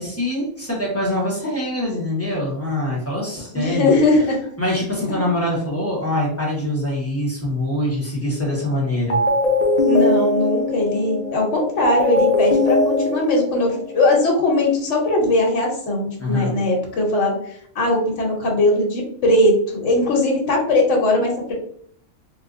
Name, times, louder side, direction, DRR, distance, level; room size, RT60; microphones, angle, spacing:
voice 1, 0.0-3.9 4.6-9.2 16.2-16.5, left 1 dB, 10° left, -5 dB, 1.0 m, -24 dB
voice 2, 3.5-4.4 5.1-5.2 9.8-17.4 17.7-21.5, left 2 dB, 60° left, -1 dB, 1.2 m, -19 dB
sound 1, 8.4-8.7 9.1-14.2, left 2 dB, 45° left, 0.6 m, -20 dB
3.8 x 2.5 x 2.5 m, 0.64 s
omnidirectional pair, 1.4 m